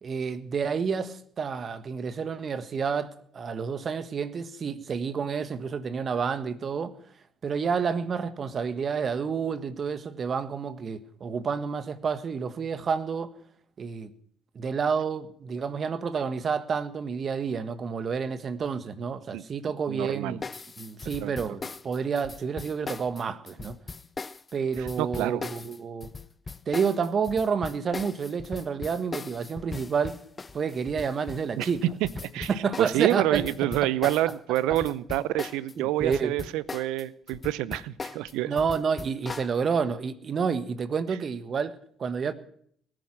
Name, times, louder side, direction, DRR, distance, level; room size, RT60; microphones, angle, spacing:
voice 1, 0.0-6.9 7.4-13.3 13.8-14.1 14.5-20.4 20.8-23.8 24.5-26.1 26.7-30.2 30.5-31.9 32.5-34.1 35.8-36.4 38.4-42.3, right 6 dB, 45° right, 1.5 m, -29 dB
voice 2, 19.9-20.4 21.2-21.6 24.8-25.5 31.6-31.7 32.0-32.1 32.3-32.5 32.8-38.5, right 15 dB, 75° right, 0.7 m, -28 dB
sound 1, 20.4-35.7 36.0-39.5, left 4 dB, 30° left, 0.8 m, -39 dB
19.0 x 10.0 x 6.2 m
hypercardioid pair, 55°, 0 cm